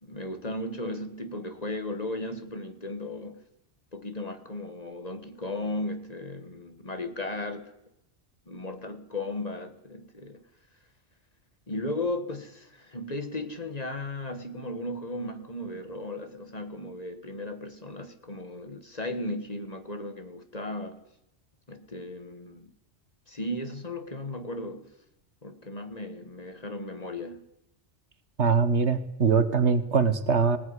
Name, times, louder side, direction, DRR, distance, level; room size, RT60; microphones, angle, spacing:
voice 1, 0.0-3.4 3.9-7.7 8.5-10.4 11.7-21.0 21.7-22.7 23.3-24.9 25.4-27.4, left 2 dB, 35° left, 1.9 m, -36 dB
voice 2, 28.4-30.6, right 5 dB, 70° right, 1.8 m, -22 dB
19.5 x 19.0 x 9.9 m
omnidirectional pair, 1.2 m